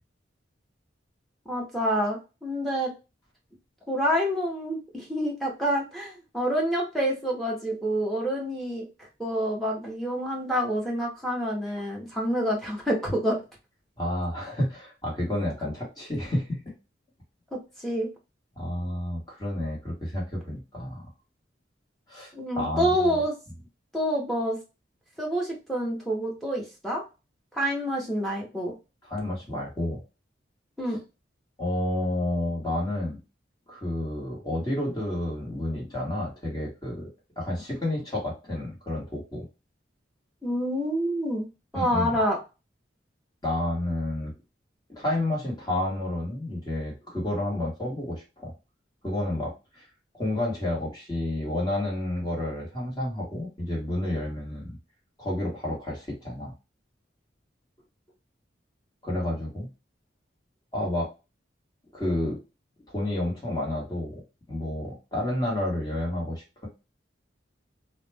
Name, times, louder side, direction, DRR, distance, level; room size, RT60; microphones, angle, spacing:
voice 1, 1.5-2.9 3.9-8.9 9.2-13.4 17.5-18.1 22.3-23.3 23.9-24.6 25.2-27.0 27.5-28.7 30.8-31.0 40.4-41.5 41.7-42.4, equal, ahead, -3 dB, 0.8 m, -27 dB
voice 2, 14.0-16.7 18.6-21.1 22.1-23.2 29.1-30.0 31.6-33.2 33.7-37.1 37.4-39.4 41.7-42.2 43.4-44.3 44.9-48.5 49.0-49.9 50.1-54.8 55.2-56.5 59.0-59.7 60.7-61.1 61.9-62.4 62.9-64.2 64.5-66.7, left 1 dB, 20° left, -3 dB, 1.2 m, -30 dB
2.4 x 2.1 x 3.2 m, 0.29 s
head